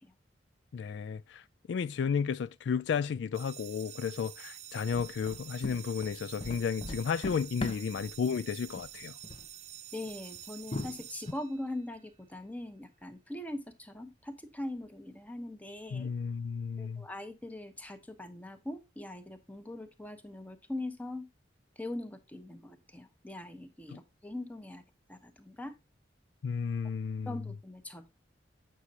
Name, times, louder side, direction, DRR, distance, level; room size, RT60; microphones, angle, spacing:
voice 1, 0.7-9.2 15.9-17.1 23.9-24.0 26.4-27.4, left 6 dB, 75° left, 0.3 m, -33 dB
sound 1, 3.3-12.0, right 11 dB, 40° right, 0.4 m, -48 dB
sound 2, 4.9-8.1 8.6-9.0 9.2-9.5 10.0-10.1 10.7-11.3, left 2 dB, 35° left, 0.6 m, -39 dB
voice 2, 9.9-16.1 16.8-21.3 21.8-24.8 25.1-25.7 27.3-28.1, left 1 dB, 10° left, 0.9 m, -41 dB
8.0 x 6.2 x 2.8 m
head